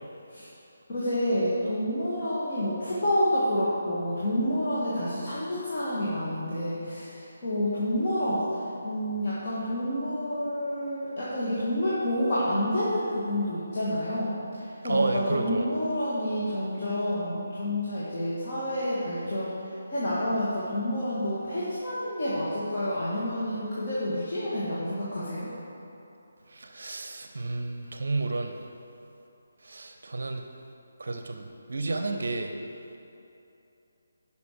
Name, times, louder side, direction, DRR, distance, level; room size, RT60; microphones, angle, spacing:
voice 1, 0.9-8.4 8.8-14.3 14.8-19.5 19.9-25.5, equal, 40° left, -10 dB, 1.9 m, -29 dB
voice 2, 14.8-15.7 26.5-28.5 29.6-30.4 31.0-32.5, right 3 dB, 55° right, 5 dB, 0.6 m, -31 dB
11.0 x 5.5 x 4.6 m, 2.8 s
figure-of-eight pair, 150°, 0 cm